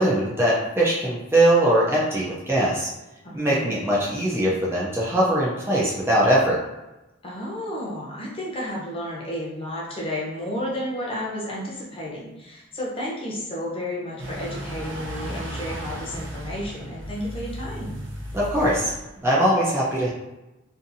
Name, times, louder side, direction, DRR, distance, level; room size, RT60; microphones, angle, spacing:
voice 1, 0.0-2.9 3.3-6.6 18.3-18.9 19.2-20.1, right 1 dB, 10° right, -6 dB, 0.4 m, -21 dB
voice 2, 3.2-3.7 7.2-18.0, left 1 dB, 25° left, -5 dB, 0.7 m, -32 dB
sound 1, 14.2-19.3, equal, 60° right, 0.6 m, -35 dB
2.6 x 2.5 x 2.5 m, 1.0 s
head